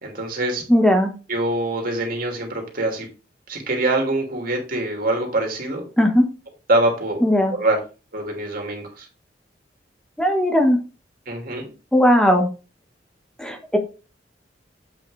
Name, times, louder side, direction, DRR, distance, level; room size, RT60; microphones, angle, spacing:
voice 1, 0.0-0.6 1.3-3.1 3.5-5.8 6.7-7.2 7.5-7.8 8.1-9.0 11.3-11.6, right 2 dB, 50° right, 2 dB, 2.7 m, -24 dB
voice 2, 0.7-1.1 6.0-6.3 7.2-7.5 10.2-10.8 11.9-12.5 13.4-13.8, equal, 5° left, 4 dB, 1.4 m, -17 dB
7.9 x 6.2 x 3.3 m, 0.33 s
head